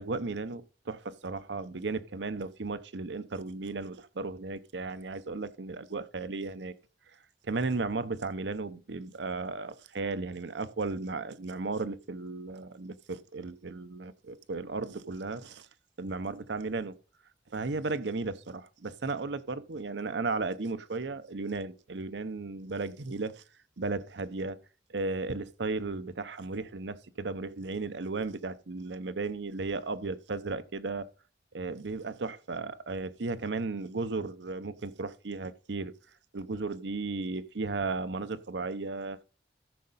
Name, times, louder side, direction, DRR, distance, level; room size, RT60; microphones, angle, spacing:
voice 1, 0.0-6.7 7.4-15.7 16.0-17.0 17.5-23.4 23.8-24.6 24.9-31.1 31.5-35.9 36.3-39.2, right 3 dB, 85° right, 0.8 m, -35 dB
13.5 x 6.5 x 4.1 m
head